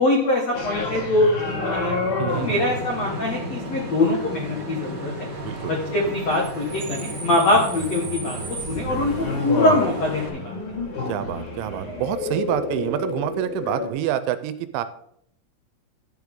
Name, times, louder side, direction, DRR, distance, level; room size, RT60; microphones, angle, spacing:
voice 1, 0.0-2.0 2.3-5.3 5.7-8.4 8.7-10.5, left 2 dB, 75° left, 0 dB, 1.5 m, -23 dB
sound 1, 0.5-13.9, left 2 dB, 40° left, 2.1 m, -30 dB
voice 2, 2.2-2.6 5.4-5.7 6.1-6.2 11.1-14.8, right 12 dB, 85° right, 12 dB, 2.9 m, -27 dB
Bus / Idling / Screech, 2.3-10.3, right 1 dB, 40° right, 1.8 m, -35 dB
11.5 x 9.5 x 3.7 m, 0.70 s
omnidirectional pair, 5.5 m